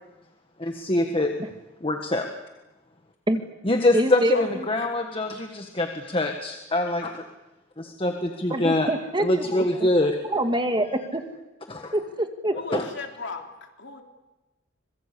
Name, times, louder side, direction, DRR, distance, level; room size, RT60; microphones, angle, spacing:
voice 1, 0.6-1.3 1.8-2.3 3.6-7.2 7.8-8.9 9.2-10.2 11.7-12.0 12.7-12.9, left 1 dB, 25° left, 4 dB, 1.6 m, -24 dB
voice 2, 3.9-4.3 8.5-9.6 10.3-11.2 11.9-12.8, right 1 dB, 25° right, 6 dB, 1.9 m, -25 dB
voice 3, 12.5-14.0, left 4 dB, 60° left, 3 dB, 3.5 m, -37 dB
26.0 x 22.0 x 8.5 m, 1.1 s
head